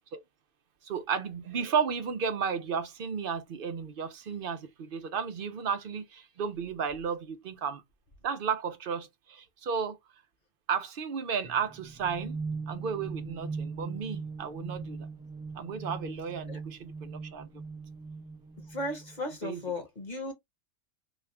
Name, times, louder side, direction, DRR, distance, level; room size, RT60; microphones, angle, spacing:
voice 1, 0.8-7.8 8.2-10.0 10.7-12.4 12.7-15.1 15.6-17.5 19.4-19.6, right 6 dB, 55° right, 0.7 m, -33 dB
sound 1, 11.4-19.2, right 4 dB, 5° right, 0.4 m, -40 dB
voice 2, 18.7-20.3, left 2 dB, 35° left, 1.3 m, -36 dB
4.1 x 2.3 x 3.1 m
omnidirectional pair, 1.3 m